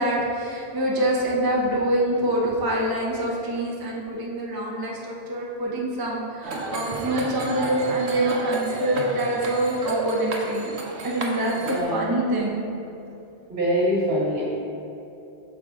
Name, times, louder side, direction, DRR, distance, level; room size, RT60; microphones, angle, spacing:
voice 1, 0.0-10.8 11.0-12.6, right 1 dB, 25° right, -4 dB, 0.6 m, -25 dB
sound 1, 6.4-11.8, right 2 dB, 85° right, 1.0 m, -32 dB
voice 2, 11.7-12.1 13.5-14.4, equal, 65° right, -5 dB, 1.6 m, -24 dB
6.5 x 4.6 x 3.6 m, 2.8 s
omnidirectional pair, 1.1 m